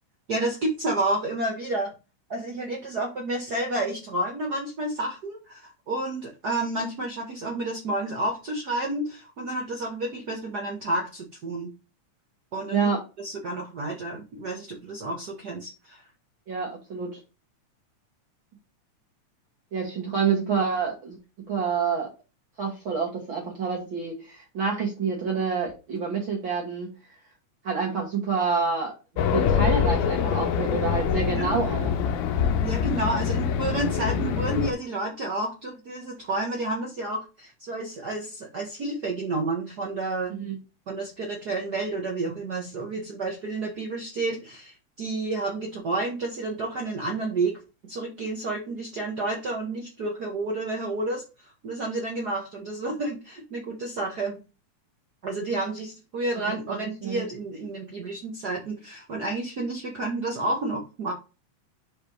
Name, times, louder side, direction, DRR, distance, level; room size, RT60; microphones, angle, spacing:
voice 1, 0.3-1.9 2.3-11.7 12.5-12.9 13.2-16.0 31.3-31.5 32.6-40.3 40.9-47.6 47.8-54.4 55.2-61.1, right 2 dB, 65° right, 0 dB, 0.9 m, -30 dB
voice 2, 16.5-17.1 19.7-21.2 21.5-22.1 22.6-26.9 27.6-28.9 29.3-32.1 40.3-40.5 56.7-56.8 57.0-57.2, right 5 dB, 50° right, -2 dB, 1.8 m, -27 dB
Race car auto racing, 29.2-34.7, left 7 dB, 85° left, 1.3 m, -25 dB
5.2 x 4.4 x 4.7 m, 0.30 s
omnidirectional pair, 3.4 m